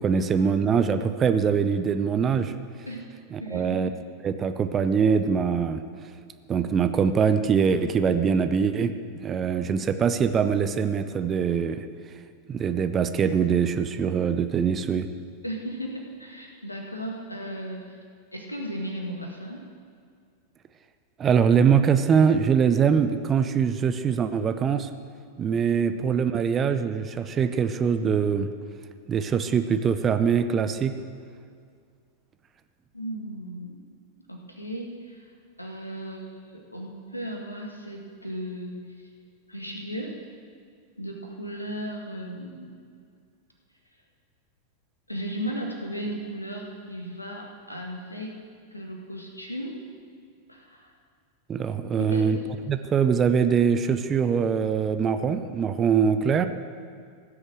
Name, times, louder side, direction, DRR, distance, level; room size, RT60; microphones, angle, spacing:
voice 1, 0.0-2.5 3.3-3.9 4.2-5.8 6.5-8.9 9.2-11.8 12.5-15.1 21.2-24.9 25.4-28.5 29.1-30.9 51.5-52.4 52.7-56.5, right 6 dB, 25° right, 10 dB, 0.7 m, -23 dB
voice 2, 3.4-3.8 15.4-18.0 18.3-19.6 32.9-33.8 34.3-35.3 35.6-39.1 39.5-40.2 41.0-42.8 45.1-48.3 48.7-49.8 50.5-50.9 52.0-52.3, equal, 85° left, 1 dB, 1.8 m, -36 dB
16.5 x 6.5 x 7.5 m, 2.2 s
figure-of-eight pair, 90°, 0 cm